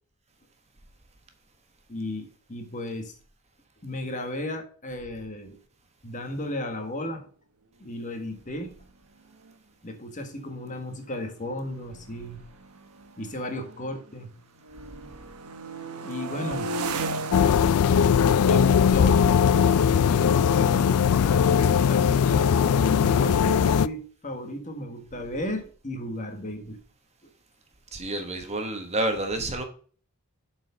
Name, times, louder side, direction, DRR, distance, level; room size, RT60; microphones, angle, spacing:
voice 1, 1.9-3.2 3.8-5.6 6.0-7.3 7.8-8.7 9.8-12.5 13.2-14.3 16.0-16.7 18.4-19.3 19.9-21.0 21.2-26.8, left 1 dB, 35° left, 1.4 m, -34 dB
sound 1, 8.8-8.9 9.2-9.5 10.3-14.2 14.5-21.2, right 3 dB, 80° right, 1.0 m, -38 dB
sound 2, 17.3-23.9, left 7 dB, 80° left, 0.4 m, -20 dB
voice 2, 27.9-29.6, right 2 dB, 30° right, 1.1 m, -29 dB
7.7 x 4.6 x 5.4 m
head